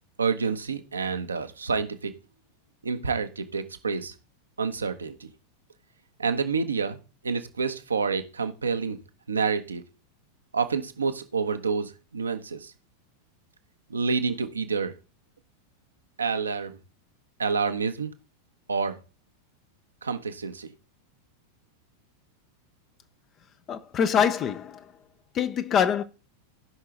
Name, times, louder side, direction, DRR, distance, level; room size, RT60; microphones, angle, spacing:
voice 1, 0.2-2.1 2.8-4.1 4.6-5.3 6.2-7.0 7.2-9.0 9.3-9.8 10.5-12.7 13.9-14.9 16.2-16.8 17.4-18.1 18.7-19.0 20.0-20.7, right 5 dB, 75° right, 1.1 m, -28 dB
voice 2, 23.7-24.8 25.3-26.0, left 8 dB, 30° left, 0.7 m, -24 dB
15.5 x 5.7 x 3.8 m
figure-of-eight pair, 90°, 0 cm